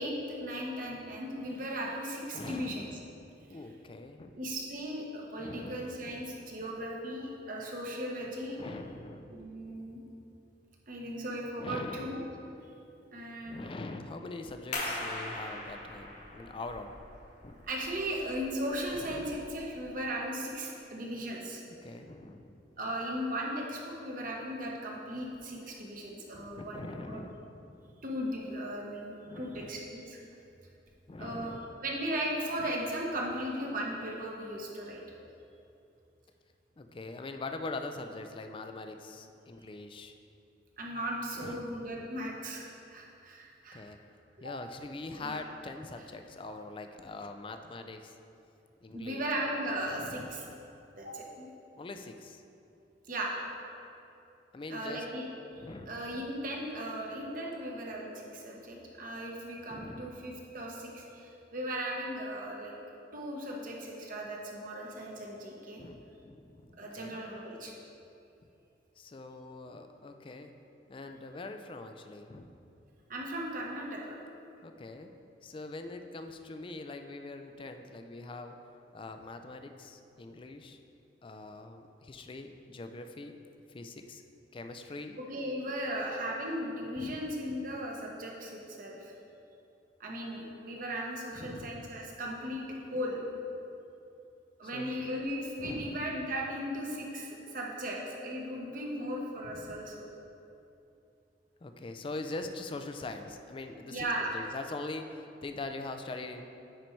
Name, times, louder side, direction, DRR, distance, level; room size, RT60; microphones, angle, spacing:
voice 1, 0.0-2.8 4.4-8.6 9.3-10.0 10.9-12.2 13.1-13.6 17.7-21.6 22.8-27.2 28.0-30.2 31.2-31.6 31.8-35.0 40.8-43.8 44.4-44.5 45.2-45.4 48.9-50.4 50.9-51.5 53.1-53.4 54.7-55.3 55.9-62.7 63.1-65.8 66.8-67.7 73.1-74.0 85.2-89.1 90.0-93.2 94.6-100.1 103.9-104.4, equal, 50° right, -2 dB, 1.1 m, -37 dB
voice 2, 2.3-4.3 5.4-6.2 8.6-9.4 11.6-12.2 13.5-17.0 17.4-17.6 19.0-19.3 21.8-22.6 26.3-27.7 29.3-29.8 31.1-31.7 32.6-32.7 36.8-40.1 41.3-41.8 43.7-44.0 44.4-48.2 48.8-49.2 49.9-50.5 51.8-52.4 54.5-55.0 55.5-55.9 59.7-60.1 65.8-67.2 69.0-70.5 70.9-72.5 74.6-75.1 75.4-78.6 78.9-80.8 81.2-83.4 83.7-84.2 84.5-85.2 87.0-87.2 87.5-87.6 91.3-91.8 94.7-95.0 95.6-96.0 99.4-99.9 101.6-106.4, left 2 dB, 30° left, 6 dB, 0.4 m, -43 dB
sound 1, 14.7-20.1, left 2 dB, 45° left, 1.1 m, -41 dB
9.3 x 4.5 x 4.6 m, 2.7 s
head